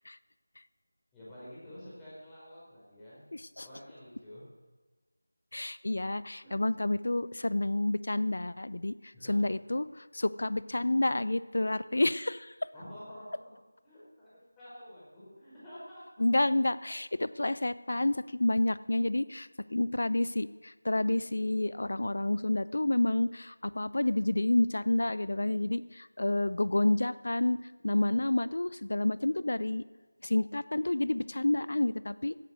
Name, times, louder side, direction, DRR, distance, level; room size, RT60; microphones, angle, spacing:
voice 1, 1.1-3.2 3.6-4.4 6.4-6.7 9.1-9.4 12.7-13.3 13.8-16.0, equal, 10° left, -11 dB, 4.4 m, -49 dB
voice 2, 3.3-3.7 5.5-12.5 16.2-27.6 27.8-29.8 30.2-32.4, left 2 dB, 60° left, 17 dB, 0.5 m, -29 dB
16.5 x 8.2 x 6.2 m, 1.3 s
figure-of-eight pair, 170°, 0 cm